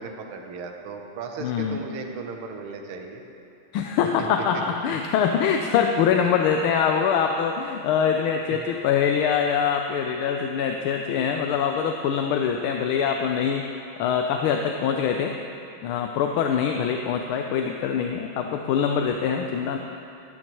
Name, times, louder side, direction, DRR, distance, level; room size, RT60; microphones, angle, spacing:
voice 1, 0.0-3.2 4.2-4.3 6.2-6.3 8.5-8.6, right 4 dB, 85° right, 3 dB, 1.8 m, -36 dB
voice 2, 1.4-1.8 3.7-13.7 14.0-15.3 15.8-19.8, left 7 dB, 85° left, 4 dB, 1.5 m, -24 dB
15.0 x 13.0 x 3.0 m, 2.7 s
omnidirectional pair, 2.3 m